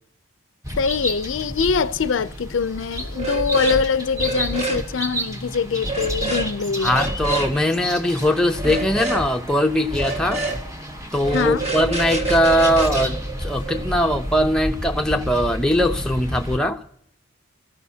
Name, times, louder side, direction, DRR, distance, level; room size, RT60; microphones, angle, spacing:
sound 1, 0.6-16.6, equal, 15° right, 1.0 m, -32 dB
voice 1, 0.8-7.0 11.3-11.6, left 5 dB, 70° left, 0.5 m, -23 dB
sound 2, 3.1-3.8 4.1-4.8 5.8-6.5 6.8-7.5 8.5-9.3 9.9-10.6 11.2-13.9, right 2 dB, 30° right, 1.7 m, -26 dB
voice 2, 6.8-10.4 11.1-16.8, equal, 5° left, 0.6 m, -21 dB
26.5 x 14.5 x 2.8 m
head